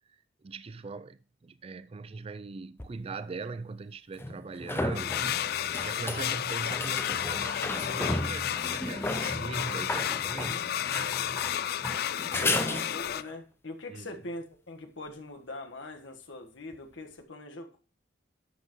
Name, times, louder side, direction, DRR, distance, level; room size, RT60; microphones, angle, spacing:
voice 1, 0.1-5.3 5.8-10.6 12.1-12.7 13.9-14.1, right 4 dB, 30° right, 0.3 m, -41 dB
sound 1, 2.8-2.9 4.2-13.3 16.7-16.8, left 2 dB, 10° left, 0.6 m, -34 dB
sound 2, 4.9-13.2, left 10 dB, 55° left, 0.3 m, -32 dB
voice 2, 12.4-17.8, left 2 dB, 75° left, 1.5 m, -42 dB
11.5 x 7.7 x 3.1 m
head